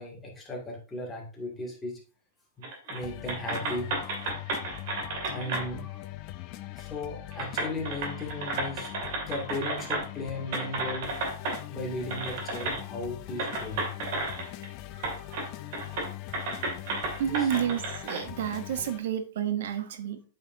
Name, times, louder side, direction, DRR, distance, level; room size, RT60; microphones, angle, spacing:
voice 1, 0.0-2.0 2.6-3.9 5.1-6.0 6.8-11.1 11.7-14.1 14.9-15.7 17.3-17.5, left 2 dB, 10° left, -2 dB, 2.1 m, -37 dB
sound 1, 2.6-3.0 3.3-5.7 6.8-6.9 7.3-10.2 10.5-11.6 12.1-12.8 13.4-14.7 15.0-15.5 15.7-18.2, right 2 dB, 55° right, 2.1 m, -33 dB
sound 2, 3.0-19.0, left 16 dB, 40° left, 0.5 m, -41 dB
voice 2, 17.2-20.2, right 10 dB, 70° right, 10 dB, 0.8 m, -30 dB
8.3 x 5.6 x 2.6 m, 0.36 s
supercardioid pair, 150°, 0 cm